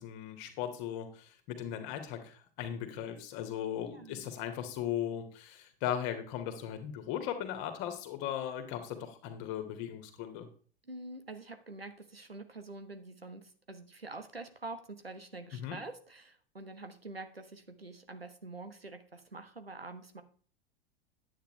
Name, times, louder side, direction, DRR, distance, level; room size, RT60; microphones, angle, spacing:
voice 1, 0.0-10.5 15.5-15.8, left 10 dB, 45° left, 6 dB, 2.1 m, -38 dB
voice 2, 3.8-4.3 10.9-20.2, right 2 dB, 90° right, 8 dB, 1.3 m, -46 dB
10.5 x 8.9 x 3.3 m, 0.42 s
figure-of-eight pair, 90°, 29 cm